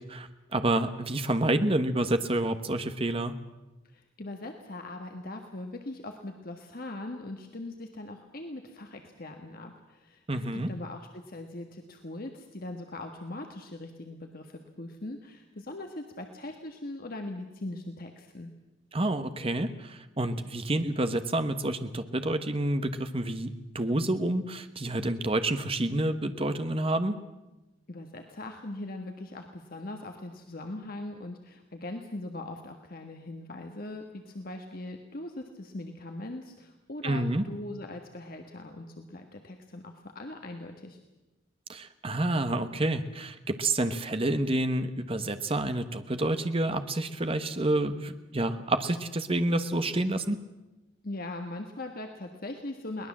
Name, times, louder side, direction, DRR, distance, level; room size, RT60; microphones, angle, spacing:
voice 1, 0.1-3.3 10.3-10.7 18.9-27.2 37.0-37.4 41.7-50.4, right 1 dB, 30° right, 9 dB, 1.2 m, -28 dB
voice 2, 3.8-10.2 10.5-18.5 27.9-41.0 51.0-53.1, left 2 dB, 50° left, 4 dB, 1.6 m, -40 dB
22.5 x 19.0 x 7.4 m, 1.0 s
head